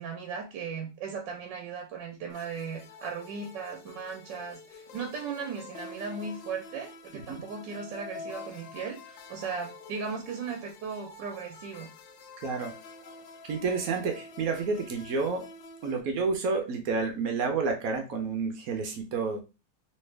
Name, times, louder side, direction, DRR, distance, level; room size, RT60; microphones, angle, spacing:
voice 1, 0.0-11.9 13.0-13.1, right 5 dB, 80° right, 3 dB, 1.3 m, -37 dB
sound 1, 2.3-16.0, left 3 dB, 80° left, 1.3 m, -47 dB
voice 2, 13.4-15.5 15.8-19.4, right 4 dB, 65° right, 5 dB, 0.9 m, -30 dB
3.2 x 3.1 x 3.2 m, 0.29 s
omnidirectional pair, 2.0 m